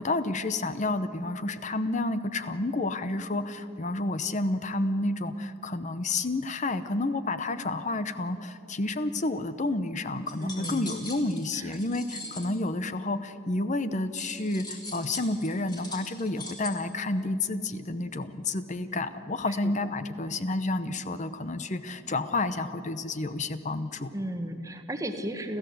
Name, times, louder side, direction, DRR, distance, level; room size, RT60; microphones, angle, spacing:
voice 1, 0.0-24.1, left 2 dB, 35° left, 12 dB, 0.8 m, -30 dB
sound 1, 10.3-12.5 14.1-16.7, left 2 dB, 20° left, 3.2 m, -41 dB
voice 2, 10.4-10.9 11.5-11.7 24.1-25.6, right 1 dB, 15° right, 7 dB, 1.3 m, -34 dB
30.0 x 14.0 x 7.9 m, 2.7 s
head